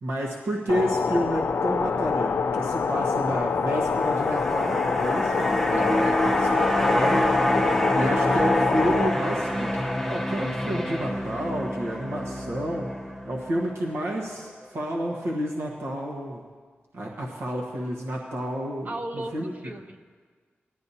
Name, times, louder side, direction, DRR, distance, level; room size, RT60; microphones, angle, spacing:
voice 1, 0.0-6.0 6.4-7.3 7.9-9.7 10.1-12.9 13.2-16.4 16.9-19.5, equal, 80° right, -2 dB, 1.3 m, -30 dB
sound 1, 0.7-9.1, left 5 dB, 70° left, 0.4 m, -26 dB
sound 2, 3.8-14.2 14.5-14.6, left 1 dB, ahead, 0.8 m, -26 dB
voice 2, 5.7-6.3 7.6-8.0 18.8-20.0, right 1 dB, 40° right, 5 dB, 0.7 m, -37 dB
18.0 x 11.5 x 2.8 m, 1.5 s
wide cardioid pair, 165°, 4 cm